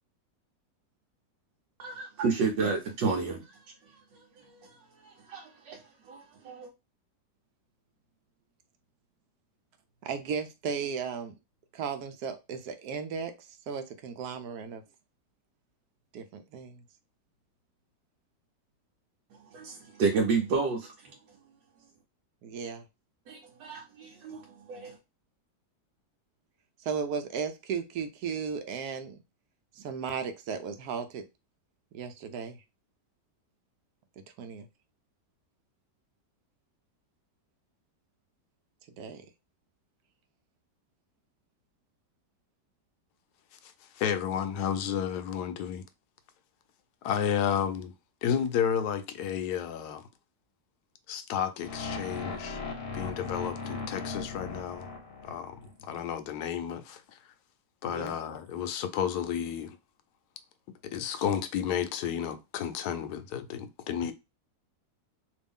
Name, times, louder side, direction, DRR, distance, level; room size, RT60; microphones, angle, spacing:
voice 1, 1.8-3.4 4.4-4.8 5.0-6.7 19.5-21.1 23.3-25.0, right 4 dB, 90° right, 1.4 m, -31 dB
voice 2, 10.0-11.3 11.7-14.8 16.1-16.8 22.4-22.8 26.8-29.2 29.8-31.2 31.9-32.6 34.4-34.7 39.0-39.3 57.9-58.1, right 6 dB, 70° right, 1.1 m, -35 dB
voice 3, 43.6-45.9 47.0-47.9 48.2-50.0 51.1-52.6 52.9-54.9 55.2-57.2 57.8-59.8 60.8-64.1, left 8 dB, 75° left, 1.1 m, -32 dB
sound 1, 51.6-55.7, left 4 dB, 45° left, 0.9 m, -38 dB
3.0 x 2.6 x 3.5 m
omnidirectional pair, 1.9 m